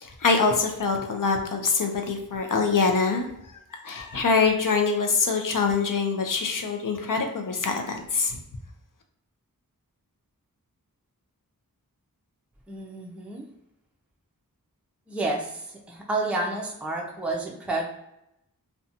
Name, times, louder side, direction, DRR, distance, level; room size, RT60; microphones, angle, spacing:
voice 1, 0.0-8.4, left 4 dB, 65° left, 4 dB, 0.5 m, -24 dB
voice 2, 12.7-13.4 15.1-17.8, right 2 dB, 5° right, -1 dB, 0.5 m, -30 dB
2.6 x 2.2 x 2.6 m, 0.83 s
wide cardioid pair, 45°, 35 cm